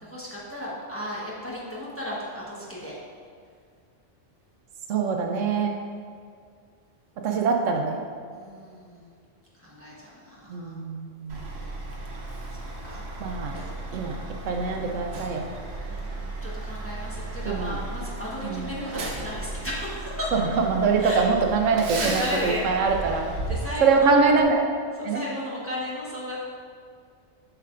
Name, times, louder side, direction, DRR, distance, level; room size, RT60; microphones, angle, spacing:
voice 1, 0.0-2.9 8.3-9.1 9.6-10.8 12.5-13.1 15.8-20.3 21.0-21.3 21.7-24.2 25.1-26.4, left 1 dB, 10° left, -7 dB, 1.1 m, -35 dB
voice 2, 4.9-5.8 7.2-8.0 10.5-11.5 13.2-13.5 13.9-14.2 14.5-15.4 17.4-17.8 18.4-18.6 20.3-23.3 23.8-24.6 25.0-25.2, right 4 dB, 80° right, 2 dB, 1.0 m, -23 dB
Truck, 11.3-24.4, right 2 dB, 60° right, 1.1 m, -35 dB
8.1 x 5.7 x 2.5 m, 2.1 s
omnidirectional pair, 1.3 m